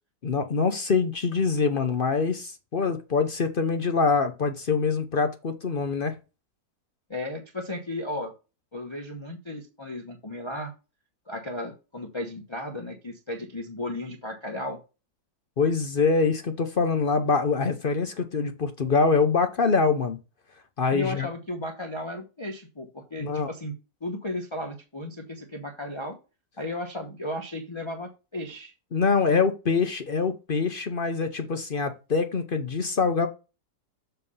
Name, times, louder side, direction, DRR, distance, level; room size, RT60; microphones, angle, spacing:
voice 1, 0.2-6.2 15.6-20.2 20.8-21.3 23.2-23.5 28.9-33.3, left 4 dB, 45° left, 0.7 m, -24 dB
voice 2, 7.1-8.3 8.7-10.7 11.3-14.8 20.9-23.7 24.0-26.2 26.6-28.7, left 1 dB, 20° left, 0.9 m, -34 dB
7.4 x 3.3 x 5.4 m
omnidirectional pair, 1.7 m